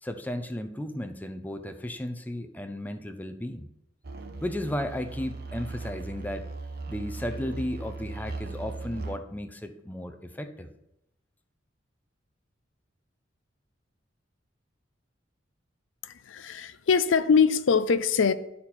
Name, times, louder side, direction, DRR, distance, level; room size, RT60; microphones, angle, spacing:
voice 1, 0.0-3.7 4.4-6.5 6.9-10.7, left 1 dB, 10° left, 0.5 m, -34 dB
sound 1, 4.0-9.2, right 3 dB, 55° right, 0.8 m, -38 dB
voice 2, 16.0-18.3, left 6 dB, 85° left, 0.5 m, -23 dB
11.5 x 4.3 x 4.2 m
head